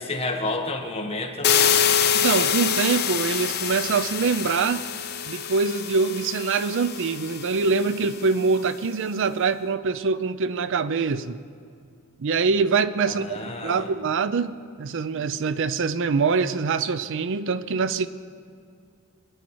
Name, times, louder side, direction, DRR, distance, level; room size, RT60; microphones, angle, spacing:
voice 1, 0.0-1.6 13.1-13.9, left 2 dB, 25° left, 2 dB, 1.3 m, -30 dB
sound 1, 1.4-8.3, left 8 dB, 50° left, 0.8 m, -25 dB
voice 2, 2.1-4.9 5.3-11.4 12.2-13.4 13.6-18.1, right 5 dB, 60° right, 14 dB, 0.5 m, -24 dB
23.0 x 9.9 x 4.7 m, 2.3 s
head